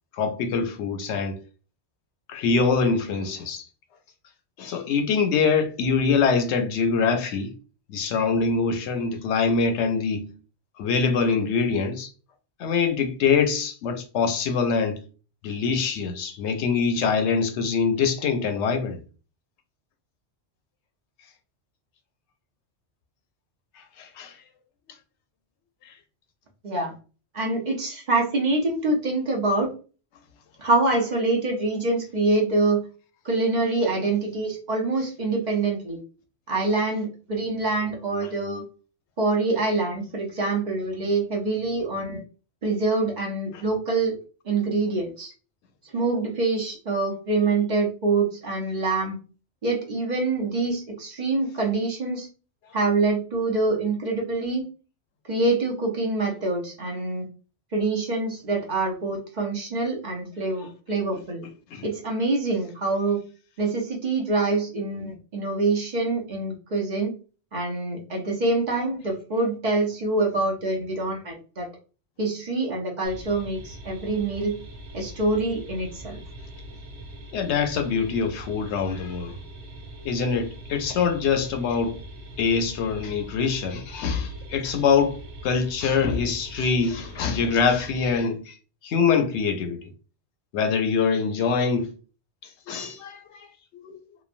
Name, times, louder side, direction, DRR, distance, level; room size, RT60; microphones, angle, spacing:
voice 1, 0.1-1.4 2.3-3.7 4.6-7.5 7.9-10.3 10.8-12.1 12.6-15.0 15.4-19.0 23.8-24.4 25.8-25.9 60.6-60.7 61.7-61.9 77.3-79.4 80.0-82.0 82.4-88.6 88.8-89.8 90.5-91.9 92.7-93.5 93.7-94.0, left 5 dB, 85° left, 0.9 m, -24 dB
voice 2, 27.3-29.7 30.6-32.8 33.2-36.0 36.5-38.6 39.2-42.2 42.6-44.1 44.4-45.3 45.9-49.2 49.6-52.3 52.7-54.6 55.3-57.2 57.7-61.4 61.8-63.2 63.6-67.1 67.5-71.7 72.2-74.5 74.9-76.2, right 3 dB, 45° right, 0.7 m, -25 dB
sound 1, 73.0-88.2, right 1 dB, 90° right, 0.9 m, -42 dB
3.0 x 2.2 x 2.4 m
omnidirectional pair, 1.1 m